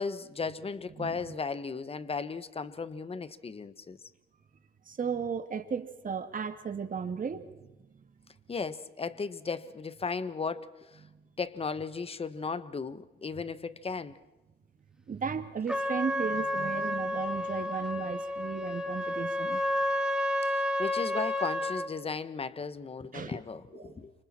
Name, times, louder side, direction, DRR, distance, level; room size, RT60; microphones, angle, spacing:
voice 1, 0.0-4.0 8.5-11.0 11.4-14.2 20.4-24.1, left 4 dB, 30° left, 1.3 m, -36 dB
voice 2, 4.9-7.7 15.1-19.6 23.1-23.3 23.8-24.0, right 6 dB, 45° right, 2.5 m, -35 dB
Trumpet, 15.7-21.9, left 1 dB, 5° right, 2.6 m, -31 dB
30.0 x 27.0 x 4.4 m
cardioid pair, 90°, 20 cm